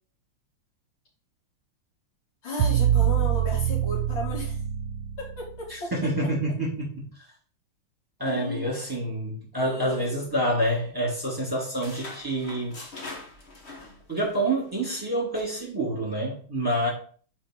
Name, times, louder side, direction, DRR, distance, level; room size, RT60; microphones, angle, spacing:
voice 1, 2.4-4.6 5.2-6.1 8.2-8.7 9.6-10.3, left 2 dB, 65° left, -5 dB, 3.5 m, -35 dB
sound 1, 2.6-5.7, right 11 dB, 80° right, 1.4 m, -25 dB
voice 2, 5.7-7.1 8.2-12.8 14.1-16.9, right 1 dB, 10° right, -5 dB, 2.4 m, -27 dB
sound 2, 10.2-11.1 11.4-14.4 14.7-14.9 15.3-15.6, left 2 dB, 35° left, 1.3 m, -43 dB
4.8 x 4.4 x 5.8 m, 0.43 s
omnidirectional pair, 2.4 m